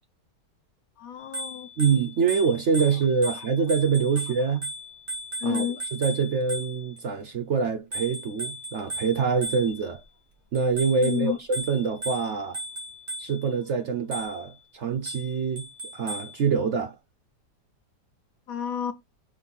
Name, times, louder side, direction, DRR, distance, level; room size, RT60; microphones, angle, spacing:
voice 1, 1.0-1.7 5.4-5.8 11.0-11.4 18.5-18.9, left 8 dB, 65° left, 1.0 m, -30 dB
Bicycle bell, 1.2-7.0 7.9-10.0 10.5-13.5 14.1-14.5 15.1-16.4, right 1 dB, 40° right, 2.2 m, -37 dB
voice 2, 1.8-4.7 5.4-5.6 5.9-10.0 10.5-12.6 13.2-15.7 15.9-17.0, right 5 dB, 60° right, 0.8 m, -25 dB
5.4 x 4.1 x 5.4 m
omnidirectional pair, 1.8 m